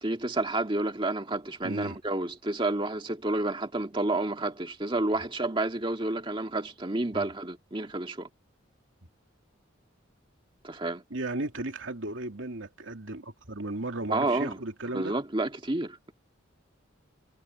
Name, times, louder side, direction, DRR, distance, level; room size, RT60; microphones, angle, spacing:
voice 1, 0.0-8.3 10.6-11.0 14.1-14.6 14.9-16.1, right 2 dB, 25° right, 1.9 m, -30 dB
voice 2, 1.6-2.0 7.1-7.3 11.1-15.2, right 2 dB, 80° right, 2.6 m, -35 dB
head